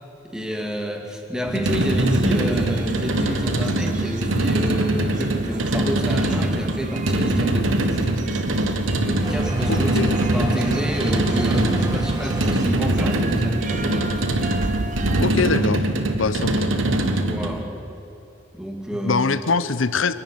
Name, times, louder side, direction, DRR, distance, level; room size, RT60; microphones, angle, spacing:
voice 1, 0.2-8.2 9.0-14.2 17.1-17.7 18.5-19.4, right 1 dB, 5° right, 2 dB, 2.2 m, -29 dB
sound 1, 1.4-17.6, right 1 dB, 90° right, 1.6 m, -23 dB
sound 2, 1.7-15.2, right 2 dB, 40° right, 0.8 m, -32 dB
sound 3, 9.2-16.2, right 1 dB, 20° right, 1.8 m, -37 dB
voice 2, 9.7-10.1 15.2-15.8 16.1-16.7 19.0-20.1, left 4 dB, 85° left, 14 dB, 0.8 m, -23 dB
25.5 x 12.0 x 9.6 m, 2.9 s
head